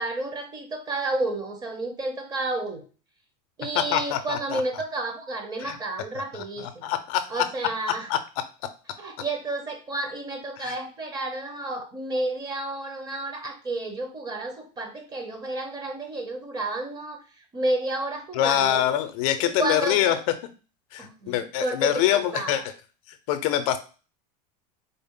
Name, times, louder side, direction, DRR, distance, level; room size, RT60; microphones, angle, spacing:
voice 1, 0.0-2.8 3.6-6.9 7.3-8.1 9.0-17.2 17.5-18.8 19.4-20.2 21.0-22.6, right 2 dB, 20° right, 5 dB, 0.6 m, -31 dB
voice 2, 3.7-4.6 5.6-5.8 6.3-7.4 8.1-8.2 10.6-10.8 18.3-20.3 20.9-22.6 23.1-23.8, left 11 dB, 65° left, 10 dB, 0.5 m, -25 dB
3.9 x 2.0 x 3.6 m, 0.35 s
supercardioid pair, 145°, 19 cm